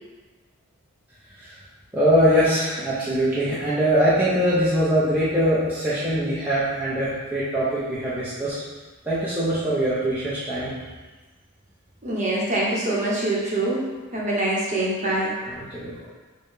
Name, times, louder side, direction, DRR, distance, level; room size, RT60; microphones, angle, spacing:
voice 1, 1.9-8.5 9.0-10.7 15.1-15.2 15.4-16.0, equal, 10° right, -10 dB, 0.6 m, -22 dB
voice 2, 12.0-15.6, right 1 dB, 35° right, -5 dB, 0.9 m, -25 dB
4.6 x 2.2 x 4.7 m, 1.3 s
head